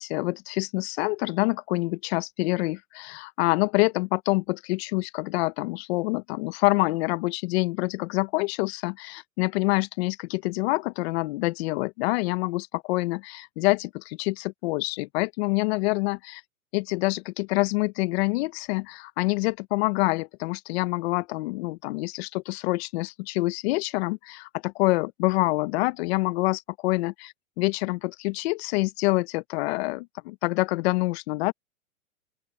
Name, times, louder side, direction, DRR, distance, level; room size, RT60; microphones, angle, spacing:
voice 1, 0.0-16.4 16.7-31.5, left 23 dB, 50° left, 0.9 m, -26 dB
open air
hypercardioid pair, 135°, 42 cm